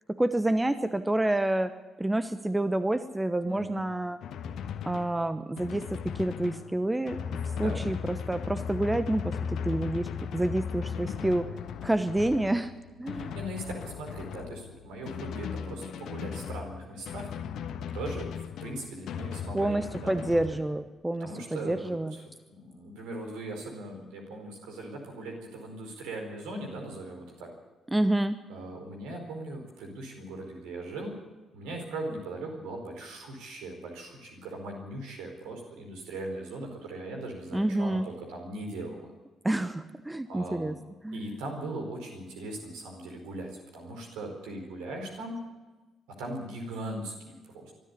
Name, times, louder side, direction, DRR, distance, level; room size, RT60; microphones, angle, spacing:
voice 1, 0.1-1.7 2.0-4.2 4.8-7.2 7.6-11.5 11.8-12.7 13.0-13.4 19.5-22.2 27.9-28.4 37.5-38.1 39.4-40.7 41.0-41.4, right 1 dB, 10° right, 12 dB, 1.0 m, -28 dB
voice 2, 3.4-3.8 7.5-7.8 11.0-11.3 13.1-17.3 17.9-18.3 18.6-20.6 21.2-22.2 22.5-27.5 28.5-31.1 31.5-39.1 40.3-40.8 41.1-45.4 46.2-47.1 47.4-47.7, right 1 dB, 65° right, 2 dB, 4.7 m, -39 dB
Drum, 4.2-20.6, left 7 dB, 55° left, 1.3 m, -37 dB
23.5 x 13.0 x 8.5 m, 1.2 s
figure-of-eight pair, 40°, 0 cm